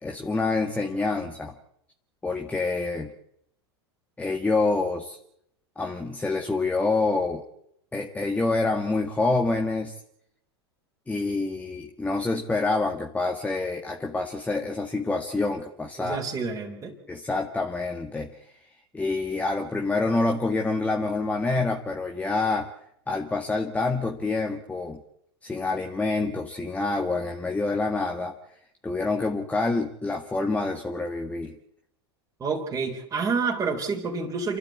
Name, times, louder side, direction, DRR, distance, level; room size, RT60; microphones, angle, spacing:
voice 1, 0.0-1.5 2.2-3.1 4.2-5.2 5.7-7.4 7.9-9.9 11.1-16.2 17.1-18.4 18.9-22.7 23.1-25.0 25.4-28.3 28.8-31.5, left 3 dB, 10° left, 3 dB, 1.7 m, -27 dB
voice 2, 16.0-16.9 32.4-34.6, right 4 dB, 20° right, -2 dB, 3.7 m, -28 dB
27.5 x 13.0 x 8.5 m, 0.76 s
hypercardioid pair, 100°, 14 cm